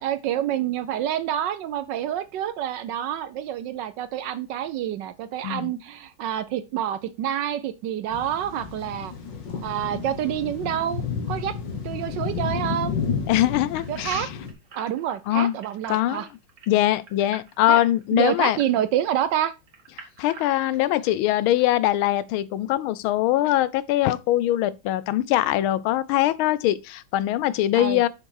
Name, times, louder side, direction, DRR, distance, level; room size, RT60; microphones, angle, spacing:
voice 1, 0.0-9.1 9.6-11.0 11.3-11.5 11.8-13.0 13.9-14.3 14.7-16.3 17.7-17.8 18.1-19.5 27.8-28.0, right 11 dB, 70° right, 1.1 m, -27 dB
sound 1, 8.1-14.5, left 6 dB, 60° left, 2.1 m, -31 dB
voice 2, 13.3-14.3 15.3-15.6 15.9-16.3 16.7-18.6 20.2-28.1, left 14 dB, 85° left, 1.4 m, -22 dB
sound 2, 13.8-19.2 19.7-21.1 21.6-21.7 22.2-22.3, right 6 dB, 55° right, 2.3 m, -43 dB
6.3 x 6.2 x 4.7 m
omnidirectional pair, 2.2 m